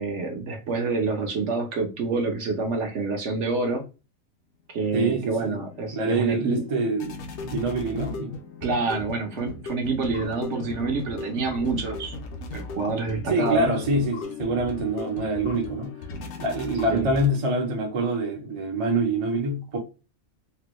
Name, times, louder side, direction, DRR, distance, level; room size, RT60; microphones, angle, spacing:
voice 1, 0.0-3.8 4.7-6.6 8.6-12.1 12.5-13.7 16.9-17.1, right 4 dB, 60° right, 1.0 m, -27 dB
sound 1, 4.9-17.7, left 3 dB, 65° left, 0.9 m, -38 dB
voice 2, 4.9-5.6 5.9-7.2 7.4-8.4 13.3-15.9 16.4-19.8, right 2 dB, 35° right, 0.6 m, -25 dB
3.4 x 2.2 x 2.9 m
omnidirectional pair, 1.4 m